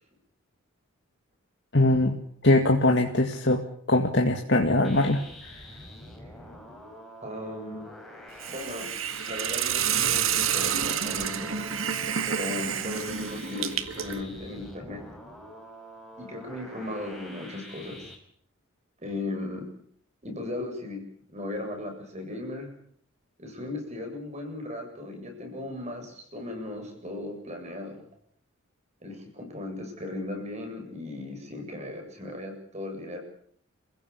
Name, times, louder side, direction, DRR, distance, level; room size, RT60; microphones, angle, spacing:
voice 1, 1.7-2.2 2.4-3.6 3.9-5.6, left 2 dB, 55° left, 2 dB, 2.1 m, -22 dB
sound 1, 4.8-18.2, equal, ahead, 5.4 m, -46 dB
voice 2, 7.2-7.9 8.5-8.9 9.3-11.6 12.3-15.1 16.2-18.1 19.0-19.7 20.2-21.0 21.3-22.7 23.4-28.1 29.0-33.2, left 2 dB, 30° right, 3 dB, 7.9 m, -37 dB
Hiss, 8.4-14.2, right 8 dB, 75° right, 1.8 m, -29 dB
29.0 x 16.0 x 8.5 m, 0.64 s
head